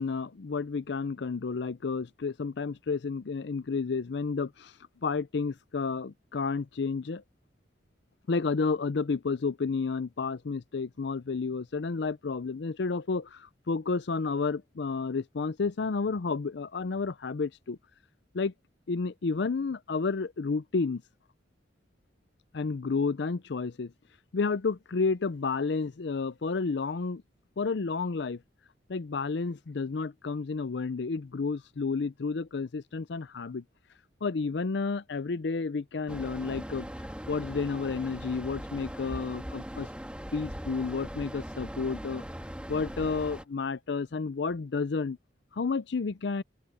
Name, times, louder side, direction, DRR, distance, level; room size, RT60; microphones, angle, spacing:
voice 1, 0.0-4.7 5.0-7.2 8.3-17.8 18.3-18.5 18.9-21.0 22.5-23.9 24.3-27.2 27.6-28.4 28.9-33.6 34.2-36.9 37.3-39.9 40.3-42.2 42.7-45.2 45.5-46.4, left 4 dB, 65° left, 0.5 m, -31 dB
sound 1, 36.1-43.4, equal, 5° right, 2.1 m, -40 dB
open air
head